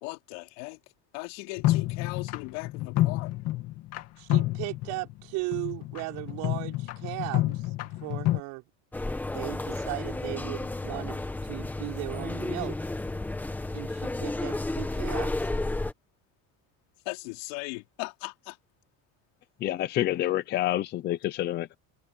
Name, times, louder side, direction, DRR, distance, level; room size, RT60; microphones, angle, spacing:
voice 1, 0.0-0.8 1.1-3.3 17.1-18.6, left 26 dB, 80° left, 3.4 m, -38 dB
sound 1, 1.6-4.0 4.3-5.2 5.5-8.4, left 16 dB, 45° left, 2.3 m, -29 dB
voice 2, 4.2-7.7 8.0-8.6 9.3-12.8 13.7-15.5, right 24 dB, 60° right, 5.2 m, -37 dB
sound 2, 8.9-15.9, left 2 dB, 5° left, 1.2 m, -32 dB
voice 3, 19.6-21.7, left 14 dB, 30° left, 0.6 m, -28 dB
cardioid pair, 175°, 35 cm